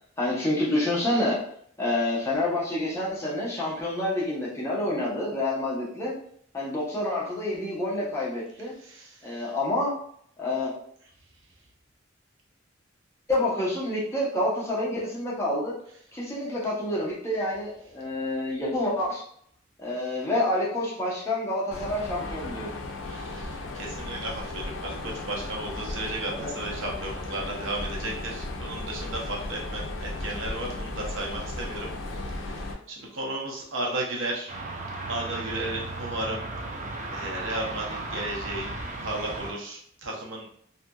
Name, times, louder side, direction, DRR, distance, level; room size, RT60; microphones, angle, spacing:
voice 1, 0.2-1.4 1.8-6.2 6.5-8.7 9.2-9.9 10.4-10.7 13.3-15.7 16.1-19.2 19.8-22.8 26.4-26.5, left 1 dB, 15° left, -5 dB, 0.7 m, -28 dB
voice 2, 8.7-9.6 23.0-34.6 35.1-36.4 37.1-38.7 39.0-40.5, right 2 dB, 75° right, -2 dB, 0.7 m, -34 dB
Mechanisms, 21.7-32.7, left 2 dB, 75° left, 0.4 m, -35 dB
sound 1, 34.5-39.5, right 2 dB, 40° right, 0.4 m, -35 dB
2.7 x 2.5 x 2.2 m, 0.65 s
head